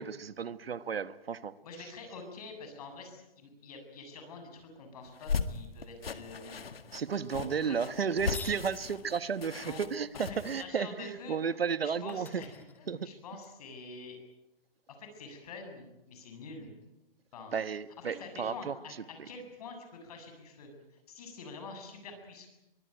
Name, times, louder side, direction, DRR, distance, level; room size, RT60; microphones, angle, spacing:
voice 1, 0.0-1.5 6.9-12.4 12.9-13.0 17.5-18.7, right 6 dB, 90° right, 1.3 m, -33 dB
voice 2, 1.6-6.6 7.3-7.9 9.6-9.8 10.1-11.4 11.8-14.2 15.0-16.7 17.3-17.5 18.0-20.7 21.1-22.5, left 3 dB, 40° left, 7.6 m, -46 dB
sound 1, 5.1-10.6, left 5 dB, 90° left, 2.0 m, -37 dB
sound 2, 8.1-8.7 11.6-11.7 12.1-13.5, left 5 dB, 5° left, 1.3 m, -47 dB
24.0 x 19.5 x 9.1 m
hypercardioid pair, 165°, 29 cm